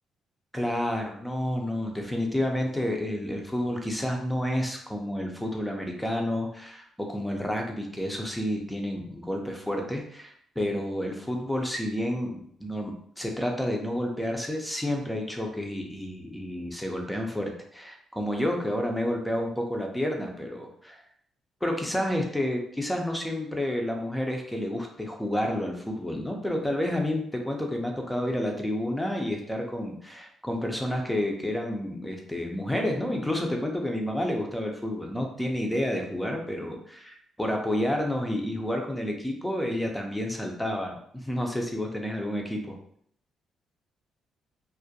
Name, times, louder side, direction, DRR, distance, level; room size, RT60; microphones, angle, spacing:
voice 1, 0.5-21.0 21.6-42.8, left 1 dB, 5° left, 2 dB, 0.4 m, -30 dB
2.3 x 2.1 x 2.6 m, 0.66 s
cardioid pair, 90°, 0 cm